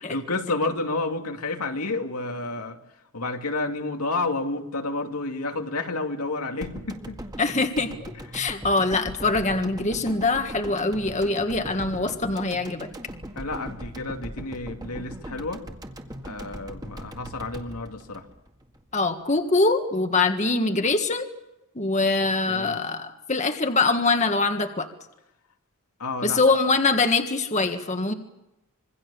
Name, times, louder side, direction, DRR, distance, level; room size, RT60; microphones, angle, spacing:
voice 1, 0.0-2.8 3.1-7.2 13.4-15.6 16.2-18.2 22.1-22.8 26.0-26.4, left 2 dB, 85° left, 4 dB, 2.6 m, -30 dB
sound 1, 6.6-18.9 19.2-19.3, equal, 15° right, 2.0 m, -40 dB
voice 2, 7.4-7.9 8.3-12.9 18.9-21.3 21.8-24.9 26.2-28.1, left 3 dB, 30° left, 6 dB, 1.7 m, -23 dB
26.5 x 23.0 x 7.1 m, 0.91 s
head